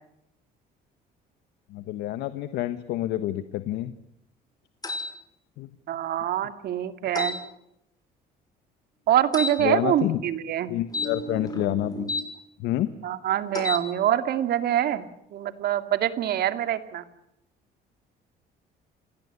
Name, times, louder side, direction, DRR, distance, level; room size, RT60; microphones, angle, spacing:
voice 1, 1.7-3.9 5.6-5.7 9.6-10.2 10.7-12.1 12.6-12.9, left 14 dB, 90° left, 12 dB, 1.4 m, -28 dB
sound 1, 4.8-5.1 7.2-7.4 9.3-9.6 10.9-12.3 13.5-13.9, left 2 dB, 20° left, 6.3 m, -31 dB
voice 2, 5.9-7.4 9.1-10.7 13.0-15.1 15.3-17.0, right 11 dB, 65° right, 10 dB, 2.4 m, -25 dB
29.0 x 21.0 x 8.4 m, 0.81 s
cardioid pair, 110°, 17 cm